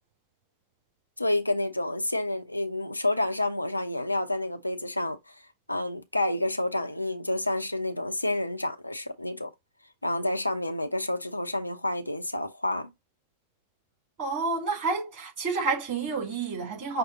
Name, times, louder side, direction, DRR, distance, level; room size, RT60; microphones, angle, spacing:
voice 1, 1.2-5.4 5.7-9.5 10.0-12.9, left 1 dB, 85° left, 0.5 m, -29 dB
voice 2, 14.2-17.0, right 4 dB, 45° right, 3.4 m, -29 dB
5.8 x 2.0 x 3.9 m
figure-of-eight pair, 90°, 0 cm